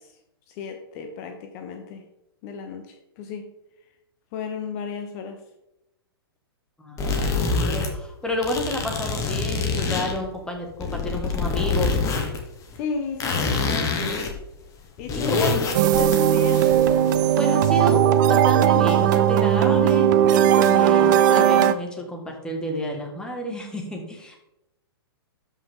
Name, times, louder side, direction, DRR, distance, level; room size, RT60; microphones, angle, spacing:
voice 1, 0.6-2.0 2.4-2.8 3.2-3.5 4.3-5.4 12.8-14.0 15.0-15.5 15.8-16.7, left 6 dB, 40° left, 6 dB, 0.9 m, -32 dB
voice 2, 6.8-12.0 15.1-15.6 15.9-16.0 17.4-24.4, left 1 dB, 5° left, 1 dB, 1.9 m, -30 dB
sound 1, 7.0-7.9 8.3-10.2 10.7-12.4 12.7-12.8 13.2-14.3 14.6-14.7 15.0-17.4, left 4 dB, 25° left, 1.6 m, -26 dB
sound 2, 15.7-21.7, right 10 dB, 50° right, 0.6 m, -18 dB
12.5 x 5.6 x 3.7 m, 0.90 s
hypercardioid pair, 115°, 13 cm